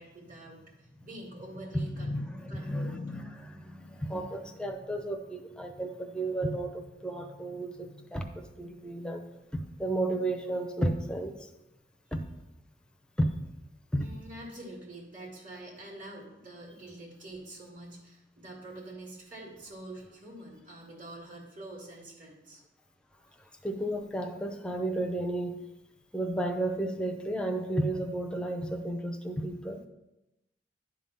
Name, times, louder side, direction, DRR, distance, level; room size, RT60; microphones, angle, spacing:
voice 1, 0.0-2.2 2.5-3.0 14.0-22.6, right 1 dB, 50° right, -3 dB, 1.9 m, -46 dB
voice 2, 1.7-9.3 9.5-11.3 12.1-12.2 13.2-13.3 13.9-14.1 23.6-25.6 26.1-29.8, right 1 dB, 5° left, 5 dB, 0.7 m, -33 dB
11.0 x 3.7 x 5.6 m, 0.93 s
head